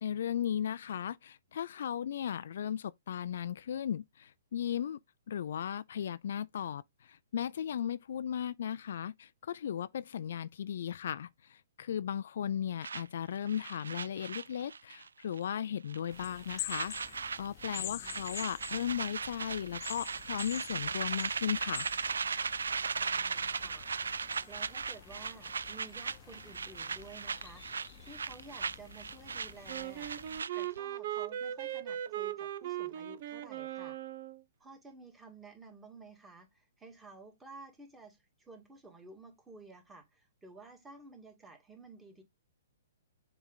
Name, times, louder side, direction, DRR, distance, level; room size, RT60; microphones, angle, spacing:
voice 1, 0.0-5.0 5.3-21.9, left 9 dB, 65° left, 0.4 m, -36 dB
sound 1, 12.8-15.1 15.3-15.6 15.9-30.8, right 5 dB, 85° right, 0.3 m, -38 dB
sound 2, 16.1-30.4, left 13 dB, 35° left, 0.8 m, -48 dB
voice 2, 17.8-18.2 22.9-23.9 24.5-27.6 28.0-30.1 30.5-34.0 34.6-36.5 36.8-38.2 38.5-42.2, right 3 dB, 10° right, 2.1 m, -53 dB
Wind instrument woodwind instrument, 29.7-34.4, right 12 dB, 50° right, 0.7 m, -38 dB
7.2 x 3.3 x 3.9 m
hypercardioid pair, 135°, 0 cm